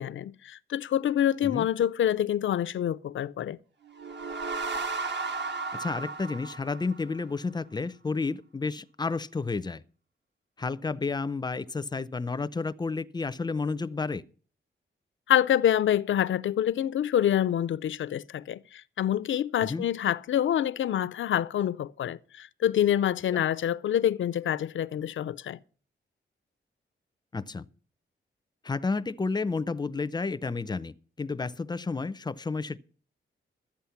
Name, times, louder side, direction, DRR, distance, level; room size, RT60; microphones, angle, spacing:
voice 1, 0.0-3.6 15.3-18.6 19.0-25.6, left 10 dB, 75° left, 0.5 m, -26 dB
sound 1, 3.9-7.4, right 3 dB, 60° right, 1.5 m, -34 dB
voice 2, 5.7-9.8 10.6-14.2 19.6-19.9 23.3-23.5 27.3-27.6 28.6-32.8, left 4 dB, 20° left, 0.5 m, -31 dB
13.0 x 8.7 x 5.7 m
cardioid pair, 90°, 20 cm